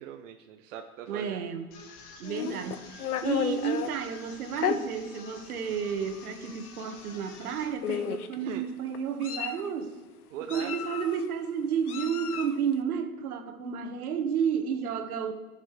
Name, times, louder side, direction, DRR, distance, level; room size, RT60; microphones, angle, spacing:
voice 1, 0.0-1.4 8.4-8.7 10.3-10.8, right 9 dB, 60° right, 5 dB, 0.9 m, -41 dB
voice 2, 1.1-1.7 2.2-9.9 10.5-15.3, right 7 dB, 80° right, 6 dB, 1.7 m, -31 dB
sound 1, 1.7-7.7, left 4 dB, 45° left, 1.9 m, -50 dB
Meow, 2.2-3.9 4.6-4.8 5.6-5.7 6.1-6.3 7.3-7.5 7.8-8.3 8.9-9.7 10.5-11.2 11.9-12.6, left 8 dB, 90° left, 1.0 m, -32 dB
18.0 x 7.2 x 3.3 m, 1.2 s
supercardioid pair, 140°, 43 cm